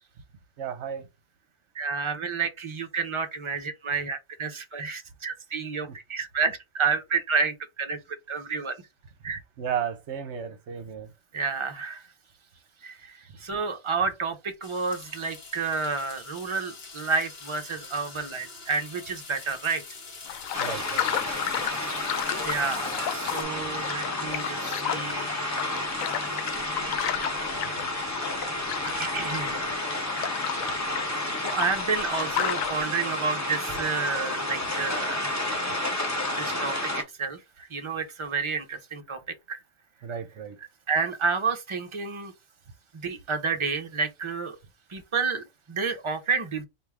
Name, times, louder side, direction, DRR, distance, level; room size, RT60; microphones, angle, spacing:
voice 1, 0.6-1.1 9.6-11.1 20.6-21.1 40.0-40.6, right 8 dB, 60° right, 1.0 m, -33 dB
voice 2, 1.7-8.0 8.3-8.8 9.2-9.4 11.3-12.1 12.8-19.8 22.4-25.6 27.4-27.5 28.8-29.7 31.4-35.4 36.4-39.2 39.5-39.6 40.6-42.3 42.9-44.6 44.9-46.7, right 5 dB, 30° right, 0.6 m, -30 dB
sound 1, 14.6-23.4, left 4 dB, 50° left, 1.2 m, -44 dB
sound 2, 20.3-32.8, left 10 dB, 85° left, 1.0 m, -33 dB
sound 3, 20.5-37.0, left 1 dB, 15° left, 0.7 m, -31 dB
4.4 x 2.6 x 3.5 m
omnidirectional pair, 1.4 m